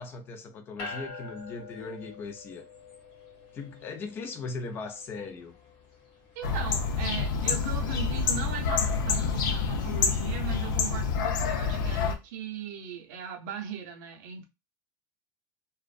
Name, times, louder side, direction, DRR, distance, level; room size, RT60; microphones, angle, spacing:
voice 1, 0.0-2.7 3.5-5.6, left 4 dB, 20° left, 0.3 m, -39 dB
sound 1, 0.8-12.4, left 4 dB, 40° left, 0.7 m, -49 dB
voice 2, 6.3-14.4, right 8 dB, 55° right, 0.6 m, -39 dB
sound 2, 6.4-12.2, left 5 dB, 75° left, 0.5 m, -27 dB
2.4 x 2.1 x 2.4 m
supercardioid pair, 170°, 11 cm